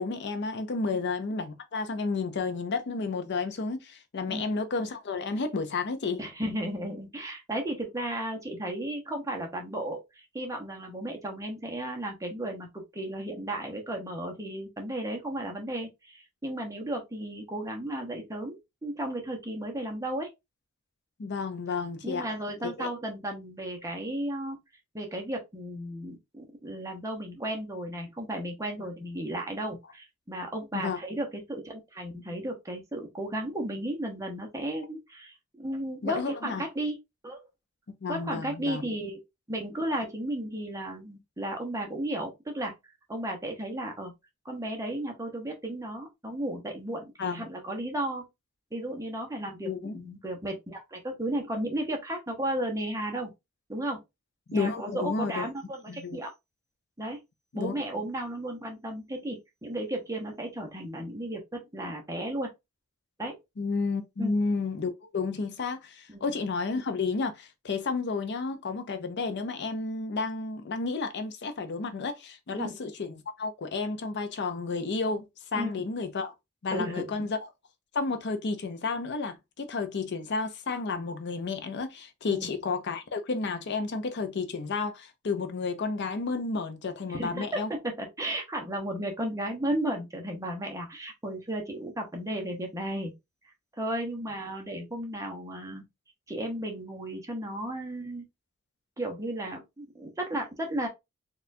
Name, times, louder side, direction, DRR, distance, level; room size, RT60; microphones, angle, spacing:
voice 1, 0.0-6.2 21.2-22.3 22.8-22.9 30.7-31.0 36.0-36.6 38.0-38.8 47.2-47.5 49.6-50.0 54.5-55.5 55.9-56.2 57.5-57.7 63.6-75.2 75.5-76.3 76.6-77.4 77.9-87.7, left 4 dB, 55° left, 0.5 m, -31 dB
voice 2, 6.2-20.3 22.0-24.6 24.9-37.0 37.2-37.4 38.1-39.2 39.5-42.7 43.1-44.1 44.4-48.3 48.7-53.3 53.7-54.0 54.5-56.3 57.0-57.2 57.5-62.5 63.2-63.4 64.2-64.4 66.1-66.2 72.6-72.8 75.5-75.9 76.7-77.3 82.3-82.5 87.1-93.1 93.8-95.8 96.3-98.2 99.0-100.9, right 1 dB, 15° right, 0.9 m, -34 dB
4.1 x 2.4 x 2.6 m
head